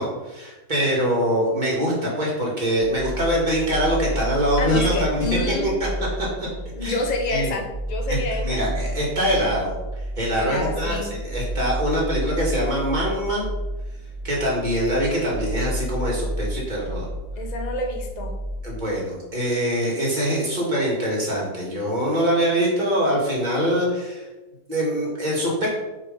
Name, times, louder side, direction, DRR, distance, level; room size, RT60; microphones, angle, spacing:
voice 1, 0.0-5.7 6.2-6.5 6.8-7.0 7.3-7.5 8.1-9.7 10.2-13.4 14.2-17.1 18.6-24.2 24.7-25.7, equal, 30° right, -4 dB, 2.2 m, -24 dB
sound 1, 2.7-18.7, right 1 dB, 55° right, 1.6 m, -31 dB
voice 2, 4.6-5.7 6.8-8.6 10.4-11.1 17.4-18.4, left 2 dB, 30° left, 2 dB, 0.9 m, -28 dB
5.7 x 5.1 x 5.3 m, 1.1 s
omnidirectional pair, 1.7 m